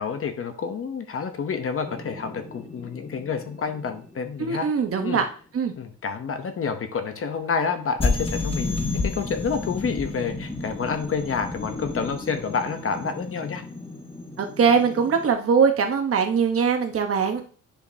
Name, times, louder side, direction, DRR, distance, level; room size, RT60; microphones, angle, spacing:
voice 1, 0.0-4.7 5.0-5.2 5.8-13.6, left 5 dB, 45° left, 7 dB, 0.9 m, -29 dB
sound 1, 1.8-4.9 8.0-15.3, left 3 dB, 15° left, 1.0 m, -32 dB
voice 2, 4.4-5.2 5.5-5.7 14.4-17.4, right 6 dB, 45° right, 4 dB, 1.1 m, -21 dB
10.0 x 5.1 x 2.8 m, 0.41 s
wide cardioid pair, 150°, 32 cm